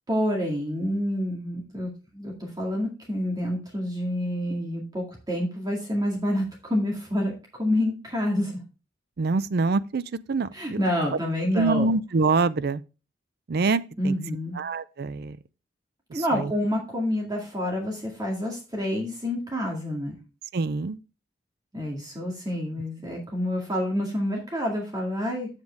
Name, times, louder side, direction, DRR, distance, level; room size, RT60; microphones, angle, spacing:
voice 1, 0.1-8.6 10.5-11.9 14.0-14.6 16.1-20.1 21.7-25.5, equal, 20° right, 2.0 m, -28 dB
voice 2, 9.2-10.5 11.5-12.8 13.5-14.1 14.6-15.4 16.1-16.5 20.5-21.0, right 3 dB, 60° right, 0.5 m, -25 dB
7.8 x 7.4 x 3.5 m
head